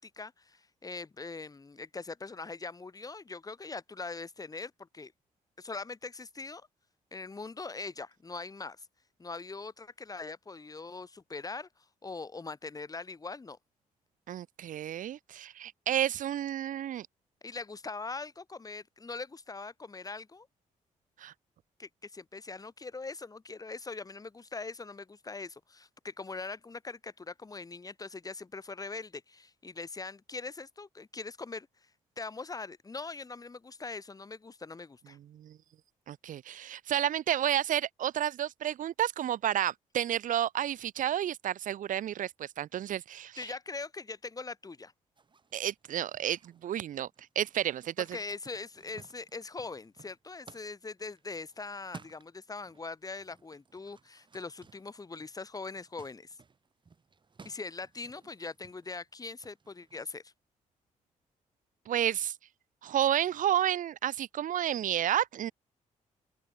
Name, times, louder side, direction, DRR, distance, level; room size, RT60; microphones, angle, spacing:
voice 1, 0.0-5.1 5.6-6.7 7.1-8.9 9.2-11.7 12.0-13.6 17.4-20.5 21.8-31.7 32.2-35.2 43.4-44.9 48.0-56.4 57.4-60.3, left 3 dB, 25° left, 4.0 m, -42 dB
voice 2, 14.3-17.1 21.2-21.3 35.3-35.6 36.1-43.4 45.5-47.1 47.4-48.1 61.9-62.3 62.8-65.5, right 11 dB, 80° right, 2.1 m, -31 dB
sound 1, 45.2-52.9 53.1-60.0, right 5 dB, 35° right, 7.1 m, -57 dB
open air
cardioid pair, 100°, 13 cm